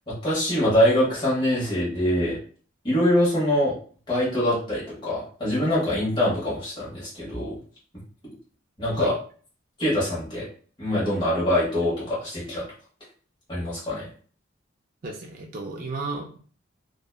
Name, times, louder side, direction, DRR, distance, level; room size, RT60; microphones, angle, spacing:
voice 1, 0.1-2.4 2.8-3.7 4.1-7.6 8.8-9.1 9.8-10.5 10.8-12.6 13.5-14.0, left 1 dB, 25° left, -8 dB, 1.1 m, -24 dB
voice 2, 15.0-16.4, right 3 dB, 40° right, 0 dB, 0.4 m, -33 dB
2.7 x 2.2 x 2.2 m, 0.43 s
head